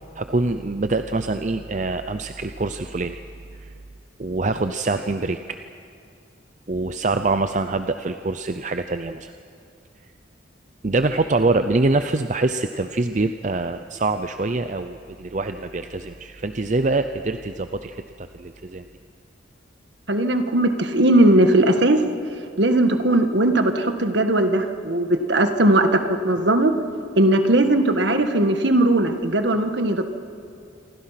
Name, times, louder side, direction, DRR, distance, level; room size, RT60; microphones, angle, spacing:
voice 1, 0.2-3.2 3.5-3.7 4.2-5.6 6.7-9.3 10.8-18.9, right 3 dB, 40° right, 9 dB, 0.6 m, -24 dB
voice 2, 20.1-22.0 22.6-26.7 27.2-30.0, right 1 dB, 65° right, 7 dB, 1.7 m, -18 dB
27.5 x 24.0 x 5.9 m, 2.5 s
head